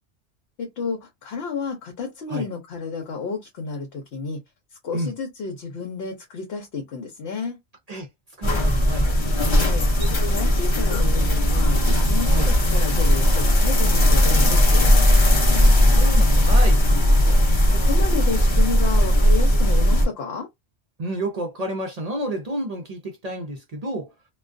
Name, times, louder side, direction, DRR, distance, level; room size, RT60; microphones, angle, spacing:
voice 1, 0.6-4.4 4.8-7.6 9.4-15.1 17.1-20.5, left 5 dB, 70° left, 0.8 m, -31 dB
sound 1, 8.4-20.1, equal, 35° left, 0.5 m, -17 dB
voice 2, 8.4-9.1 12.3-12.5 15.4-16.8 21.0-24.1, right 1 dB, 50° right, 0.5 m, -30 dB
2.3 x 2.2 x 2.4 m
omnidirectional pair, 1.2 m